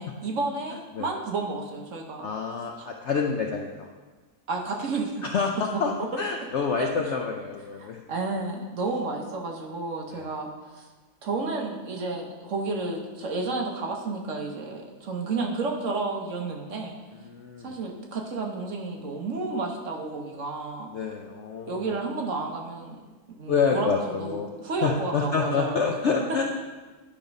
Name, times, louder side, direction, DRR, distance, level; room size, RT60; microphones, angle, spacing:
voice 1, 0.0-2.3 2.8-2.9 4.5-5.2 5.7-5.9 6.8-7.1 7.8-10.9 11.2-16.9 17.6-20.9 21.7-23.0 23.4-25.9, right 3 dB, 55° right, 1 dB, 1.1 m, -31 dB
voice 2, 2.2-3.9 5.2-8.0 10.1-10.3 17.1-17.7 20.9-21.9 23.5-24.5 24.8-26.4, left 5 dB, 65° left, 1 dB, 0.7 m, -27 dB
10.5 x 3.6 x 5.2 m, 1.3 s
omnidirectional pair, 1.8 m